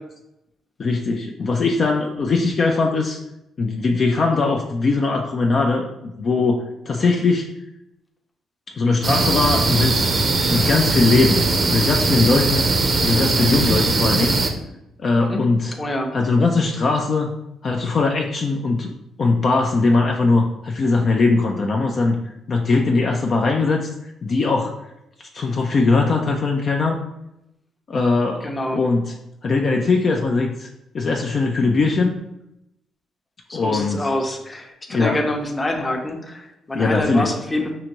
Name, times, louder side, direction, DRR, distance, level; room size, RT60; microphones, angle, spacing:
voice 1, 0.8-3.2 3.6-7.5 8.8-10.1 10.5-11.4 11.7-12.7 13.0-14.4 15.0-15.7 16.1-17.3 17.6-18.9 19.2-22.2 22.5-23.9 24.2-24.7 25.3-27.0 27.9-29.0 29.4-30.7 30.9-32.1 33.5-34.1 34.9-35.2 36.7-37.3, left 3 dB, 45° left, 1 dB, 0.4 m, -20 dB
sound 1, 9.0-14.5, right 3 dB, 40° right, 0.6 m, -20 dB
voice 2, 15.2-15.5 15.8-16.1 28.4-28.8 33.5-37.7, left 1 dB, 20° left, 3 dB, 0.7 m, -26 dB
5.5 x 2.6 x 2.9 m, 0.86 s
cardioid pair, 90°, 0 cm